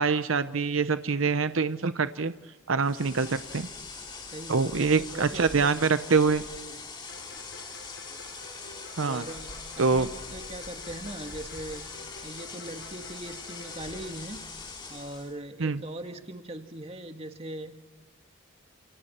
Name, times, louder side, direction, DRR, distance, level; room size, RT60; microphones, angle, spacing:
voice 1, 0.0-2.3 2.7-3.7 4.5-6.4 9.0-9.2 9.8-10.1 15.6-15.8, right 4 dB, 85° right, 12 dB, 0.8 m, -25 dB
sound 1, 2.8-15.3, left 4 dB, 25° left, 3.1 m, -42 dB
voice 2, 4.2-5.7 6.1-6.3 6.7-6.8 9.0-11.8 12.2-14.5 14.9-17.7, right 1 dB, 30° right, 5 dB, 1.9 m, -40 dB
sound 2, 7.1-14.1, left 2 dB, 60° left, 4.0 m, -50 dB
30.0 x 28.5 x 4.4 m, 1.3 s
head